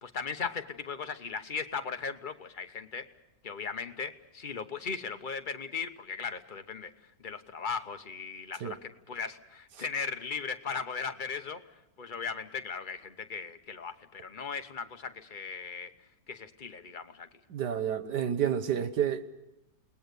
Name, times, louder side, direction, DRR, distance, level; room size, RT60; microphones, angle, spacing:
voice 1, 0.0-3.1 3.4-6.9 7.2-11.6 12.0-15.9 16.3-17.3, left 5 dB, 35° left, 1.0 m, -37 dB
voice 2, 17.5-19.3, right 9 dB, 75° right, 1.7 m, -29 dB
29.0 x 19.5 x 6.8 m
omnidirectional pair, 1.8 m